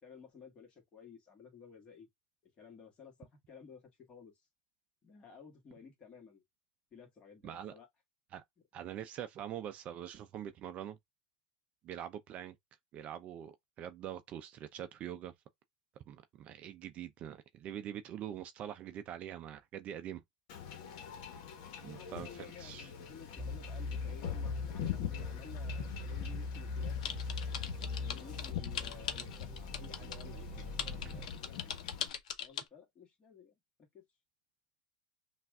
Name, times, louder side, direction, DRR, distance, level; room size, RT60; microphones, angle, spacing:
voice 1, 0.0-2.1 2.4-4.5 5.0-6.4 6.9-7.9 21.8-27.0 27.9-31.7 32.4-34.0, left 6 dB, 30° left, 1.8 m, -55 dB
voice 2, 7.4-7.7 8.3-8.4 8.7-11.0 11.8-12.6 12.9-15.3 16.1-20.2 21.8-22.9, right 10 dB, 35° right, 0.5 m, -44 dB
Wind / Ocean / Boat Water vehicle, 20.5-32.1, left 9 dB, 65° left, 1.2 m, -44 dB
sound 1, 23.4-31.3, left 3 dB, ahead, 2.3 m, -41 dB
sound 2, 27.0-30.2 30.8-32.6, left 8 dB, 85° left, 0.8 m, -39 dB
5.7 x 2.5 x 2.3 m
supercardioid pair, 125°, 4 cm